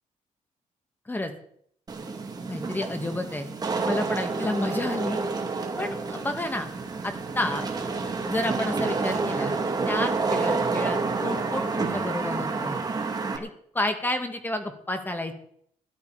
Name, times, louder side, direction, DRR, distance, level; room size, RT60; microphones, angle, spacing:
Wind / Rain, 1.9-13.4, right 4 dB, 30° right, 2.5 m, -29 dB
voice 1, 2.5-3.5 3.8-5.2 5.8-6.7 7.0-7.6 8.3-9.5 9.9-12.8 13.4-15.3, left 1 dB, 15° left, 6 dB, 2.2 m, -30 dB
17.0 x 11.5 x 5.1 m, 0.65 s
cardioid pair, 115°, 13 cm